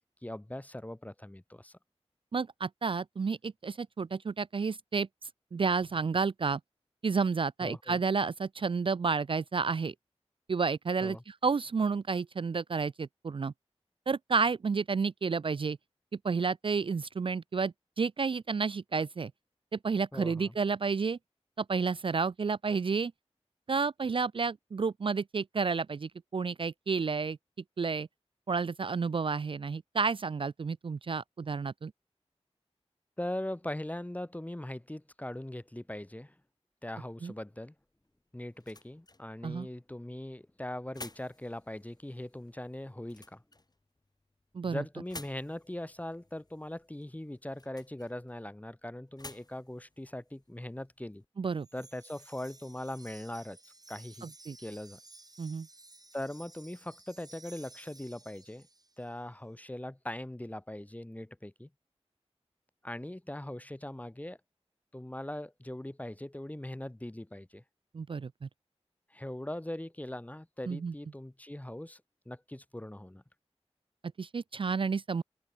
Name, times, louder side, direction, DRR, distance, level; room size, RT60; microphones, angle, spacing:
voice 1, 0.2-1.8 7.6-8.0 11.0-11.2 20.1-20.6 33.2-36.3 36.8-37.7 38.3-43.4 44.7-51.2 51.7-54.3 54.6-55.0 56.1-58.7 59.0-61.7 62.8-64.4 64.9-67.6 69.1-72.0 72.3-73.2, left 1 dB, 15° left, 0.9 m, -40 dB
voice 2, 2.3-5.1 5.5-6.6 7.0-9.9 10.5-13.5 14.1-15.8 16.2-19.3 19.7-21.2 21.6-23.1 23.7-27.4 27.8-28.1 28.5-31.9 37.2-37.3 39.4-39.7 44.5-44.8 51.4-51.7 54.2-54.6 55.4-55.7 67.9-68.5 70.7-70.9 74.2-75.2, right 5 dB, 50° right, 0.4 m, -31 dB
sound 1, 37.8-51.3, left 2 dB, 35° left, 2.1 m, -54 dB
Wind chime, 51.6-59.1, right 2 dB, 35° right, 1.3 m, -55 dB
wide cardioid pair, 50°, 11 cm